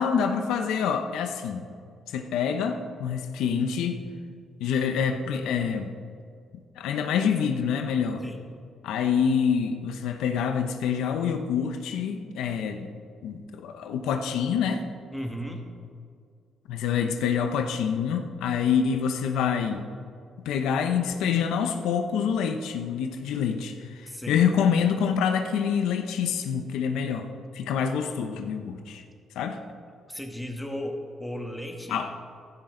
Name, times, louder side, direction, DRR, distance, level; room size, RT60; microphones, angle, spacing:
voice 1, 0.0-1.6 2.1-4.0 4.6-6.0 6.8-8.2 8.8-12.9 13.2-14.8 16.7-19.9 20.4-24.0 24.3-27.3 27.5-29.0 29.4-29.6 31.9-32.1, left 7 dB, 90° left, 6 dB, 0.9 m, -26 dB
voice 2, 15.1-15.7 24.1-24.4 30.1-32.0, equal, 5° left, 2 dB, 1.9 m, -35 dB
16.0 x 11.5 x 3.9 m, 2.2 s
cardioid pair, 90°, 0 cm